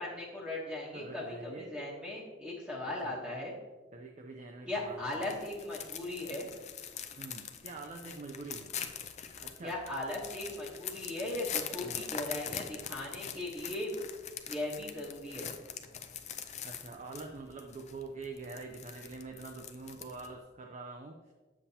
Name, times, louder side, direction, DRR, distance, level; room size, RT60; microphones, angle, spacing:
voice 1, 0.0-3.5 4.7-6.5 9.6-14.0 14.5-15.5, left 1 dB, 5° right, -6 dB, 1.1 m, -38 dB
voice 2, 0.9-1.7 2.8-3.2 3.9-5.4 7.2-8.7 9.4-9.8 11.8-12.1 16.6-21.3, right 3 dB, 40° right, 3 dB, 0.5 m, -45 dB
sound 1, 4.9-20.4, left 8 dB, 40° left, 0.5 m, -43 dB
7.2 x 7.1 x 2.8 m, 1.3 s
head